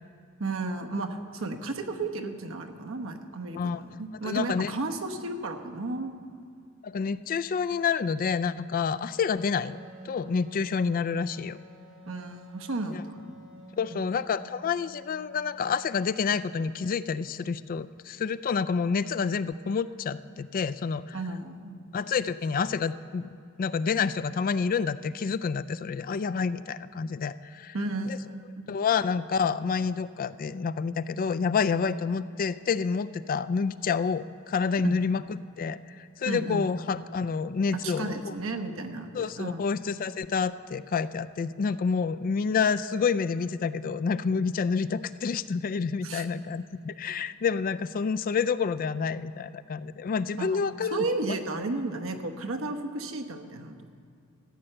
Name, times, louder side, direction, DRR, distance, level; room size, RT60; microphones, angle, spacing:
voice 1, 0.4-6.1 12.1-13.2 13.9-14.1 21.1-21.8 27.7-28.6 34.8-35.0 36.3-36.7 37.7-39.6 46.0-46.2 50.4-53.9, right 2 dB, 75° right, 5 dB, 1.0 m, -33 dB
voice 2, 4.2-4.7 6.8-9.8 10.0-11.6 13.8-21.2 21.9-23.3 23.6-27.7 28.1-28.2 28.7-35.2 35.6-38.3 39.1-51.0, left 5 dB, 45° left, 14 dB, 0.3 m, -28 dB
Wind instrument woodwind instrument, 9.4-15.9, equal, 30° right, 2.7 m, -50 dB
14.0 x 6.7 x 8.8 m, 2.3 s
head